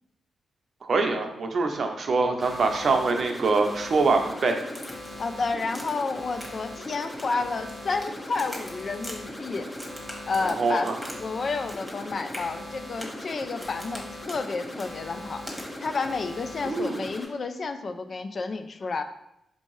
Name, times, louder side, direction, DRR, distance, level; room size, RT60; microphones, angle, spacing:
voice 1, 0.8-4.6 10.4-10.9 16.6-17.1, right 3 dB, 60° right, 4 dB, 0.5 m, -24 dB
sound 1, 2.4-17.2, left 1 dB, 30° left, 0.9 m, -39 dB
Crack, 4.7-5.3 5.7-6.1 6.4-6.8 7.1-8.1 8.4-9.2 9.7-11.2 11.4-12.0 12.3-12.5 13.0-13.2 13.6-14.0 14.3-14.4 14.8-14.9 15.5-15.7, equal, ahead, 1.3 m, -42 dB
voice 2, 5.2-9.7 10.3-10.9 11.2-15.4 15.8-19.0, left 4 dB, 55° left, 8 dB, 0.3 m, -30 dB
4.4 x 2.7 x 3.0 m, 0.82 s
supercardioid pair, 40°, 0 cm